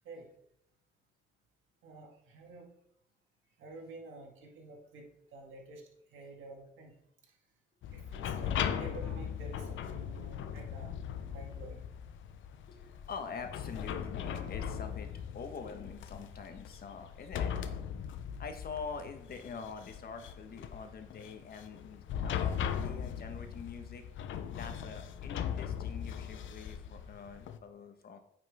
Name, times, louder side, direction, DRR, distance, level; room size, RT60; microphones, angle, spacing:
voice 1, 1.8-2.7 3.6-5.8 6.1-6.9 7.9-10.9 11.3-11.9, right 2 dB, 80° right, 1 dB, 2.1 m, -50 dB
sound 1, 7.8-27.6, left 8 dB, 75° left, 0.7 m, -39 dB
voice 2, 12.7-15.1 15.3-17.8 18.4-24.0 24.5-28.2, left 5 dB, 50° left, 6 dB, 1.3 m, -45 dB
9.1 x 5.9 x 3.6 m, 0.74 s
cardioid pair, 90°, 20 cm